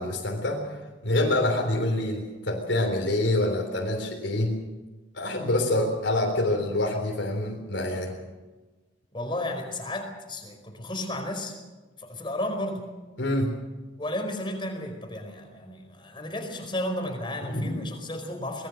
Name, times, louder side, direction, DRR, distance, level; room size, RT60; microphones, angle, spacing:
voice 1, 0.0-4.6 5.1-8.2 13.2-13.5 17.5-17.9, left 1 dB, 70° left, 0 dB, 3.8 m, -26 dB
voice 2, 9.1-11.6 12.0-12.8 14.0-18.7, left 1 dB, 25° left, 4 dB, 4.8 m, -33 dB
24.5 x 20.5 x 6.5 m, 1.2 s
head